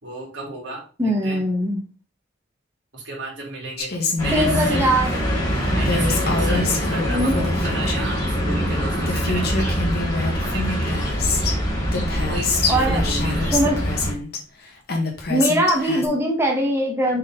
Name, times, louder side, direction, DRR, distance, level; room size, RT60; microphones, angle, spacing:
voice 1, 0.0-1.4 2.9-4.9 5.7-9.8 10.4-11.0 12.2-13.6, right 2 dB, 85° right, -3 dB, 3.2 m, -33 dB
voice 2, 1.0-1.8 4.3-5.2 7.1-7.4 12.7-13.0 13.5-13.8 15.3-17.2, right 1 dB, 15° right, -1 dB, 1.4 m, -21 dB
Female speech woman speaking, 3.8-5.0 5.9-8.2 8.8-8.9 9.1-11.6 11.9-14.4 14.9-16.1, left 3 dB, 60° left, 1.8 m, -26 dB
sound 1, 4.2-14.1, equal, 20° left, 3.1 m, -24 dB
6.3 x 4.4 x 3.8 m, 0.35 s
head